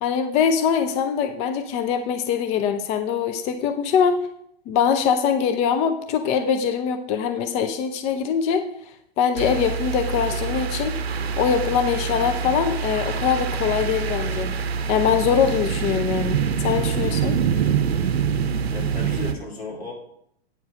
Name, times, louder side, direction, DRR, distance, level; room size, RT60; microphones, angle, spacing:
voice 1, 0.0-4.2 4.7-8.7 9.2-14.5 14.9-17.4, left 7 dB, 20° left, 8 dB, 0.5 m, -23 dB
sound 1, 9.4-19.3, right 6 dB, 70° right, 0.7 m, -25 dB
voice 2, 18.7-19.9, left 2 dB, 75° left, -2 dB, 3.1 m, -34 dB
8.8 x 4.7 x 6.2 m, 0.72 s
figure-of-eight pair, 110°, 32 cm